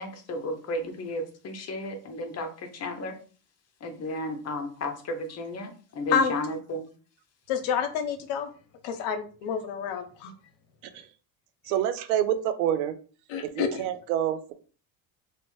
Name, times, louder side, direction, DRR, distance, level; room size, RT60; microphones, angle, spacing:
voice 1, 0.0-3.2 3.8-6.9, left 1 dB, 35° left, 0.6 m, -33 dB
voice 2, 7.5-8.5 8.8-10.3 13.3-13.8, left 7 dB, 70° left, 0.7 m, -28 dB
voice 3, 11.6-12.9 13.4-14.5, right 11 dB, 90° right, 0.5 m, -27 dB
2.7 x 2.1 x 3.1 m
supercardioid pair, 95°, 47 cm